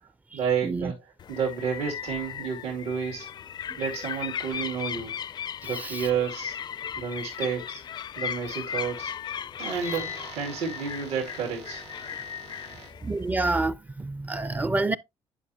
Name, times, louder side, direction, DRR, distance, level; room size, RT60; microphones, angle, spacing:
voice 1, 0.3-1.0 1.3-3.3 3.8-5.1 5.6-6.6 7.0-7.8 8.2-9.1 9.6-12.9, right 6 dB, 85° right, 2.3 m, -31 dB
sound 1, 1.2-13.7, left 8 dB, 45° left, 0.4 m, -37 dB
voice 2, 13.0-15.0, right 2 dB, 15° right, 0.4 m, -28 dB
10.5 x 5.2 x 2.7 m
cardioid pair, 100°, 11 cm